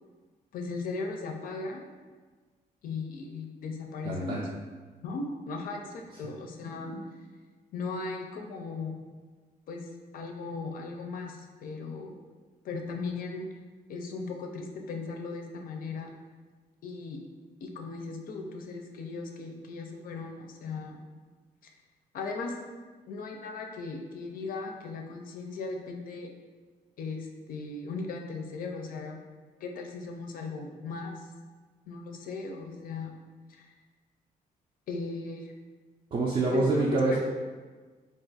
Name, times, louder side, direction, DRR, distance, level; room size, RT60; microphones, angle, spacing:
voice 1, 0.5-1.8 2.8-4.5 5.0-7.0 7.7-9.0 9.7-9.9 10.1-12.1 12.6-13.5 13.9-16.1 16.8-17.2 17.6-21.0 21.6-21.7 22.1-22.6 23.1-26.3 27.0-29.2 29.6-31.3 31.9-33.1 33.5-33.7 34.9-35.5 36.5-37.2, left 3 dB, 70° left, 3 dB, 0.4 m, -37 dB
voice 2, 4.0-4.4 36.1-37.2, right 3 dB, 40° right, -4 dB, 0.4 m, -26 dB
2.4 x 2.4 x 3.9 m, 1.4 s
cardioid pair, 120°, 15 cm